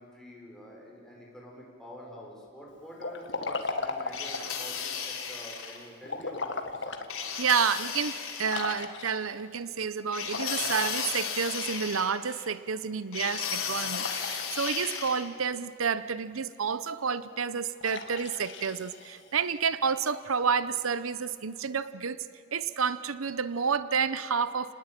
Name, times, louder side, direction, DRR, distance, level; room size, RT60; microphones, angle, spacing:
voice 1, 0.0-7.0, equal, 5° left, -3 dB, 5.5 m, -47 dB
Liquid, 3.0-4.6 6.0-7.1 7.6-7.7 8.4-9.4 10.3-11.9 13.9-15.3 17.8-19.5, left 3 dB, 60° left, 1.9 m, -37 dB
sound 1, 4.1-5.8 7.1-8.7 10.1-12.5 13.1-15.3, left 7 dB, 90° left, 3.9 m, -35 dB
voice 2, 7.4-22.2 22.5-24.7, right 6 dB, 85° right, 15 dB, 0.8 m, -30 dB
30.0 x 20.5 x 9.1 m, 2.5 s
head